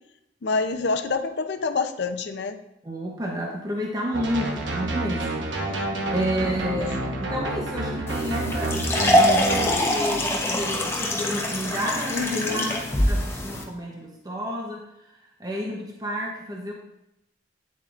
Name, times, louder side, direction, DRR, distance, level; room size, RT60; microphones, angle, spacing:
voice 1, 0.4-2.6 5.6-6.1 6.8-6.9 12.1-12.7, left 4 dB, 65° left, 8 dB, 0.5 m, -27 dB
voice 2, 2.8-14.8 15.4-16.7, equal, 20° right, -1 dB, 0.7 m, -31 dB
sound 1, 4.1-9.7, right 2 dB, 90° right, 1.1 m, -29 dB
sound 2, 8.1-13.6, left 1 dB, 15° left, 0.8 m, -24 dB
8.4 x 7.4 x 2.5 m, 0.84 s
head